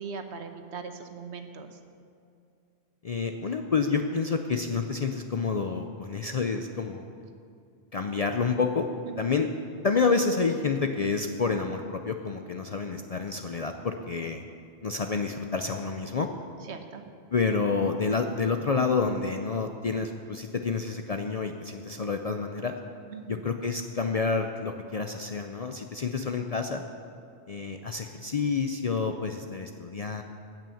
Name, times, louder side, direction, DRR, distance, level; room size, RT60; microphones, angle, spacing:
voice 1, 0.0-1.7 9.1-9.3 16.7-17.0 23.1-23.4, right 5 dB, 70° right, 7 dB, 1.2 m, -40 dB
voice 2, 3.0-7.1 7.9-8.9 9.2-9.5 9.8-14.4 14.8-16.3 17.3-22.7 23.3-26.8 27.5-30.2, left 4 dB, 50° left, 5 dB, 0.5 m, -28 dB
16.0 x 6.0 x 7.0 m, 2.4 s
omnidirectional pair, 1.2 m